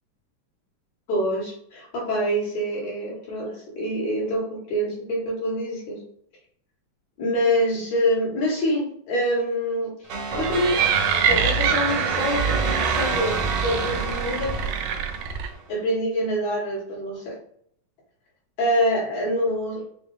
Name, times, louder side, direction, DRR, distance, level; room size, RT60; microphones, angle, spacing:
voice 1, 1.1-6.0 7.2-14.6 15.7-17.4 18.6-19.8, equal, 70° left, -5 dB, 3.0 m, -26 dB
sound 1, 10.1-15.6, right 4 dB, 65° right, 1.6 m, -28 dB
sound 2, 10.3-15.5, right 7 dB, 85° right, 1.3 m, -25 dB
5.7 x 2.1 x 3.2 m, 0.67 s
omnidirectional pair, 3.3 m